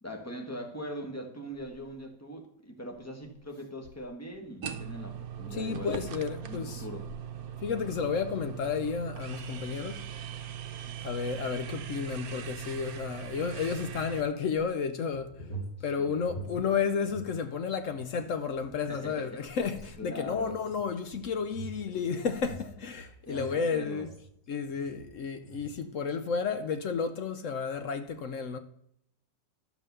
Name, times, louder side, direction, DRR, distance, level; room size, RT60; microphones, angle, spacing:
voice 1, 0.0-6.1 6.5-7.1 16.0-16.2 18.9-19.4 20.0-20.6 21.9-22.1 23.3-24.1, equal, 10° left, 1.4 m, -41 dB
sound 1, 4.6-14.2, right 9 dB, 65° right, 1.2 m, -40 dB
voice 2, 5.5-6.8 7.6-10.0 11.0-15.4 15.8-24.1 24.5-28.6, left 6 dB, 60° left, 0.9 m, -32 dB
sound 2, 15.1-17.4 17.7-24.4 24.7-25.1 25.4-25.7, right 2 dB, 80° left, 4.1 m, -45 dB
12.0 x 5.5 x 6.7 m
omnidirectional pair, 1.8 m